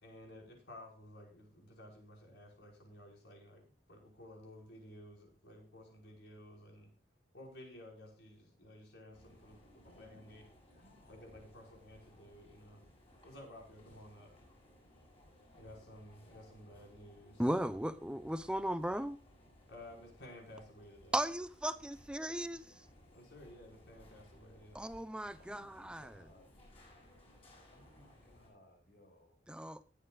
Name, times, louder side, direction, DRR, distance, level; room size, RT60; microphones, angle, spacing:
voice 1, 0.0-6.9 7.3-10.4 11.1-12.8 13.2-14.3 15.5-17.4 19.7-21.2 23.1-24.9, left 1 dB, 75° left, 5.3 m, -54 dB
sound 1, 9.1-28.5, left 1 dB, 30° left, 7.0 m, -62 dB
voice 2, 9.8-11.5 25.4-26.6 27.7-29.5, left 1 dB, 55° left, 5.8 m, -63 dB
voice 3, 17.4-19.2 21.1-22.9 24.7-26.3 29.5-29.8, right 1 dB, 5° right, 0.7 m, -37 dB
21.0 x 9.1 x 2.4 m
head